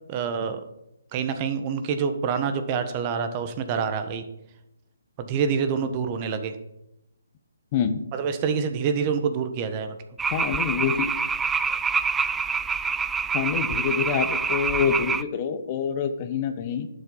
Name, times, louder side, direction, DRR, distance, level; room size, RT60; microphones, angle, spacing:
voice 1, 0.1-0.6 1.1-4.2 5.2-6.6 8.1-10.0, right 6 dB, 30° right, 9 dB, 1.2 m, -26 dB
sound 1, 10.2-15.2, right 5 dB, 10° right, 0.3 m, -26 dB
voice 2, 10.3-11.1 13.3-16.9, left 7 dB, 35° left, 9 dB, 1.1 m, -26 dB
11.5 x 7.6 x 5.6 m, 0.85 s
figure-of-eight pair, 145°, 0 cm